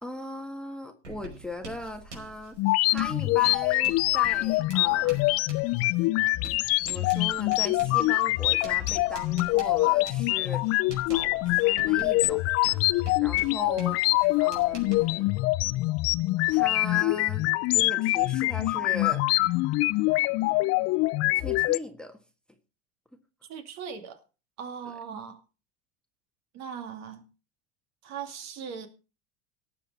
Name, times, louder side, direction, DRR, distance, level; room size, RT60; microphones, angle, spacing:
voice 1, 0.0-2.6 2.8-5.2 6.8-10.6 11.1-12.4 12.7-12.8 13.2-14.0 14.4-15.3 16.5-19.2 21.3-22.2, left 1 dB, ahead, 6 dB, 1.5 m, -39 dB
Writing, 1.0-15.2, right 2 dB, 85° right, 5.2 m, -46 dB
sound 1, 2.6-21.8, left 21 dB, 45° left, 0.5 m, -24 dB
voice 2, 23.5-24.2 24.6-25.4 26.5-27.2 28.0-28.9, right 7 dB, 50° right, 6 dB, 2.6 m, -39 dB
18.5 x 7.0 x 4.1 m, 0.33 s
hypercardioid pair, 95°, 35 cm